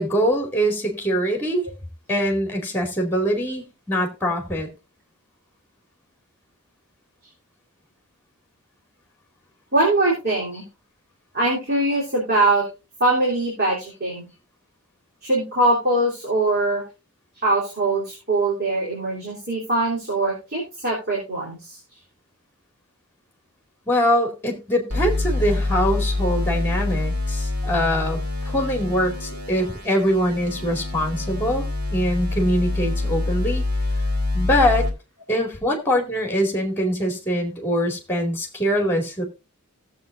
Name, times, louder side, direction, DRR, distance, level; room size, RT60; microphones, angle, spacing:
voice 1, 0.0-1.7 2.1-4.7 23.9-28.2 28.4-33.7 34.3-34.9 35.3-39.2, equal, 10° left, 2 dB, 2.3 m, -23 dB
voice 2, 9.7-10.6 11.3-12.6 13.0-14.2 15.2-16.8 17.3-21.8, right 2 dB, 45° right, -5 dB, 3.4 m, -22 dB
sound 1, 24.9-34.9, left 2 dB, 90° right, 2.6 m, -26 dB
17.5 x 7.6 x 2.6 m, 0.29 s
head